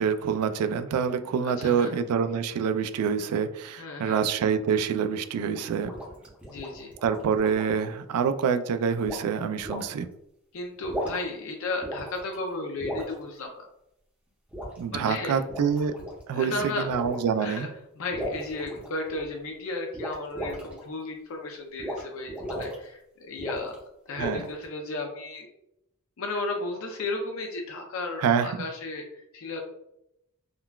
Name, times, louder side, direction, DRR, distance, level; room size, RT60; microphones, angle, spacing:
voice 1, 0.0-5.9 7.0-10.1 14.8-15.9 16.3-17.7 24.2-24.5 28.2-28.5, right 7 dB, 85° right, 11 dB, 0.3 m, -26 dB
voice 2, 1.4-1.9 3.8-4.2 6.4-6.9 10.5-13.7 14.9-15.4 16.3-16.9 17.4-17.7 18.0-23.8 24.1-25.5 26.2-29.6, left 2 dB, 65° left, 2 dB, 0.5 m, -34 dB
sound 1, 5.5-7.8 9.0-9.3 9.6-9.8 10.7-11.4 11.8-12.4 12.8-13.1 14.5-14.8 15.4-16.2 16.9-17.3 18.1-19.3 19.9-20.8 21.8-22.0 22.3-22.7 23.4-23.8 24.2-24.6, equal, 5° right, 0.7 m, -36 dB
3.7 x 2.2 x 2.3 m, 0.80 s
head